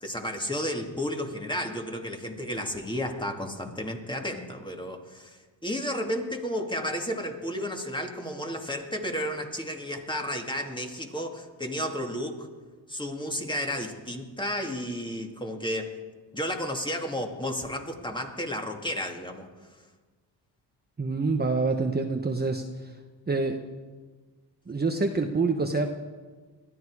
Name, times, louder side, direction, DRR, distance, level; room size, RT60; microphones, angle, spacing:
voice 1, 0.0-12.5 12.9-15.9 16.3-19.4, equal, 10° left, 3 dB, 2.4 m, -32 dB
voice 2, 21.0-22.6 23.3-23.6 24.7-25.9, right 3 dB, 20° right, 3 dB, 1.1 m, -26 dB
21.0 x 13.5 x 4.9 m, 1.4 s
cardioid pair, 75°, 43 cm